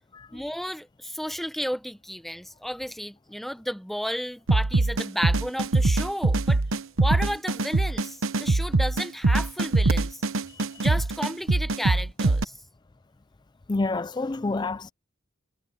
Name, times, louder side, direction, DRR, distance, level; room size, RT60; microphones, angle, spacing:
voice 1, 0.3-6.6 7.0-10.2 10.8-12.5, equal, ahead, 0.9 m, -32 dB
sound 1, 4.5-12.4, right 2 dB, 85° right, 1.0 m, -23 dB
voice 2, 13.7-14.9, left 3 dB, 20° left, 0.4 m, -28 dB
head